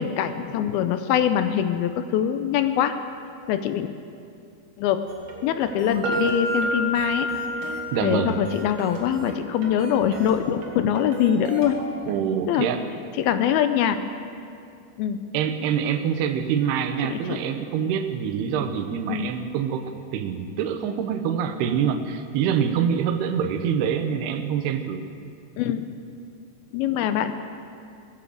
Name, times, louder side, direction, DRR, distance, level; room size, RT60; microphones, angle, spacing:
voice 1, 0.0-3.0 3.5-3.9 4.8-5.0 5.4-7.3 7.6-11.8 12.5-12.7 13.2-14.0 15.0-15.2 17.0-17.4 19.1-19.3 25.6-25.9 26.7-27.3, left 9 dB, 80° left, 9 dB, 2.4 m, -23 dB
sound 1, 5.1-11.9, right 3 dB, 45° right, 2.0 m, -39 dB
sound 2, 6.0-13.9, equal, 65° right, 1.9 m, -32 dB
voice 2, 7.9-8.4 12.0-12.8 15.3-25.0, right 8 dB, 85° right, 8 dB, 2.9 m, -25 dB
19.5 x 9.0 x 7.8 m, 2.4 s
omnidirectional pair, 4.6 m